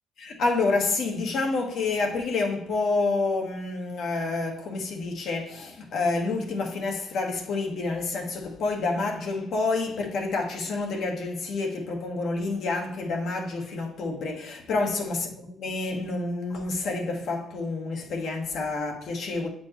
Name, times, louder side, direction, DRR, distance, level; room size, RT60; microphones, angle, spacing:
voice 1, 0.2-19.5, left 3 dB, 70° left, 1.3 m, -28 dB
7.7 x 4.3 x 3.0 m
cardioid pair, 90°, 0 cm